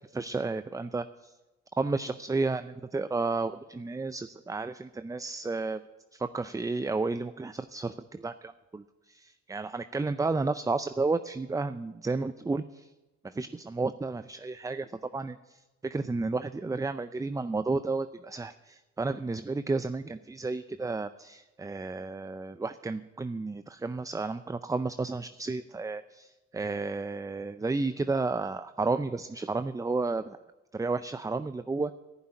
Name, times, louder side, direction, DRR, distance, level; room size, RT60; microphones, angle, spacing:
voice 1, 0.1-1.3 1.8-5.8 6.1-12.9 13.2-30.4 30.7-31.9, right 3 dB, 10° right, 12 dB, 0.4 m, -32 dB
11.0 x 10.5 x 9.8 m, 1.1 s
cardioid pair, 90°, 30 cm